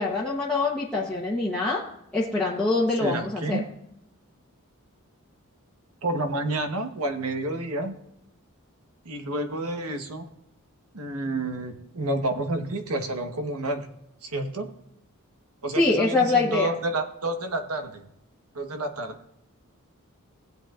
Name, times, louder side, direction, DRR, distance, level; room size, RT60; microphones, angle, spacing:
voice 1, 0.0-1.8 2.1-3.6 15.7-16.7, left 3 dB, 5° left, -6 dB, 1.0 m, -24 dB
voice 2, 3.0-3.7 6.0-7.9 9.0-10.3 10.9-13.9 14.2-14.7 15.6-18.1 18.5-19.2, right 2 dB, 90° right, 5 dB, 1.2 m, -29 dB
17.0 x 8.0 x 2.5 m, 0.80 s
head